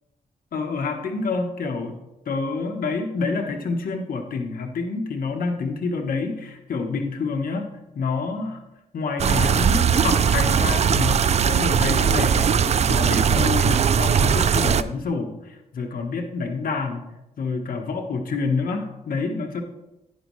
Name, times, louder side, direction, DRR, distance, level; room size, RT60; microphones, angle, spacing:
voice 1, 0.5-2.0 2.3-7.7 7.9-8.6 8.9-17.0 17.4-19.6, left 4 dB, 75° left, 3 dB, 1.3 m, -27 dB
sound 1, 9.2-14.8, right 7 dB, 50° right, 0.4 m, -19 dB
11.0 x 10.0 x 3.2 m, 0.95 s
wide cardioid pair, 110°, 15 cm